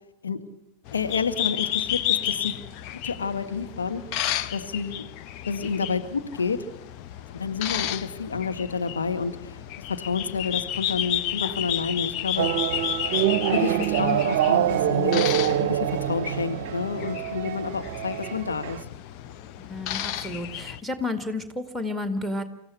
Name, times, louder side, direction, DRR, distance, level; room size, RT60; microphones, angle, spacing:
voice 1, 0.9-2.5 3.0-4.0 4.5-5.1 5.4-6.6 7.3-9.6 9.9-12.5 13.5-18.8, left 5 dB, 70° left, 7 dB, 1.5 m, -29 dB
sound 1, 0.9-20.8, left 11 dB, 40° left, 0.9 m, -32 dB
sound 2, 12.4-18.8, right 11 dB, 50° right, 0.8 m, -25 dB
voice 2, 19.6-22.4, left 2 dB, ahead, 10 dB, 2.3 m, -31 dB
26.5 x 15.0 x 8.3 m, 0.95 s
figure-of-eight pair, 90°, 0 cm